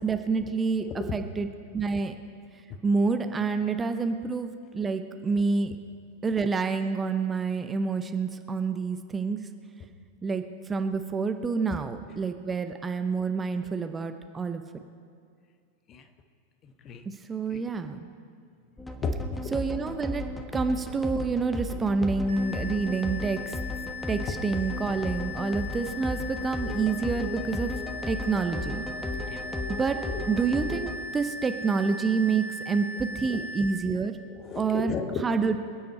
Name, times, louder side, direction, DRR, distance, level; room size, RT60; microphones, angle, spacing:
voice 1, 0.0-1.5 1.7-2.2 2.8-5.7 6.2-9.5 10.2-14.6 17.1-18.1 19.5-20.3 20.5-23.6 24.1-27.7 28.1-28.8 29.7-30.0 30.3-34.2 34.6-34.9 35.2-35.6, right 4 dB, 15° right, 8 dB, 0.7 m, -28 dB
voice 2, 0.8-1.3 2.7-2.8 11.7-11.8 15.9-16.1 16.6-17.1 17.5-17.6 19.0-19.5 22.0-22.1 24.3-24.4 29.3-29.5 30.0-30.1 33.3-33.4 34.3-35.2 35.5-35.6, left 5 dB, 30° left, 7 dB, 1.2 m, -35 dB
sound 1, 18.8-31.0, left 1 dB, 5° left, 1.2 m, -35 dB
sound 2, 22.3-33.7, left 3 dB, 50° left, 2.3 m, -39 dB
26.0 x 9.4 x 4.5 m, 2.3 s
figure-of-eight pair, 90°, 0 cm